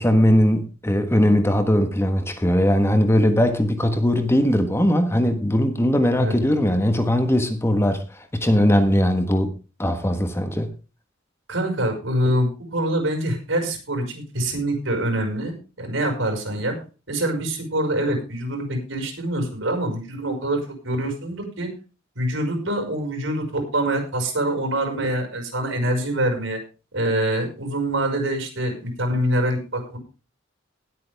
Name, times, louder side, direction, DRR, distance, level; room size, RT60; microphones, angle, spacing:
voice 1, 0.0-9.5 9.8-10.7, equal, 15° left, 1.4 m, -20 dB
voice 2, 11.5-16.8 17.1-21.7 22.2-26.6 26.9-30.0, right 1 dB, 75° right, 5.6 m, -25 dB
19.5 x 8.7 x 3.5 m
head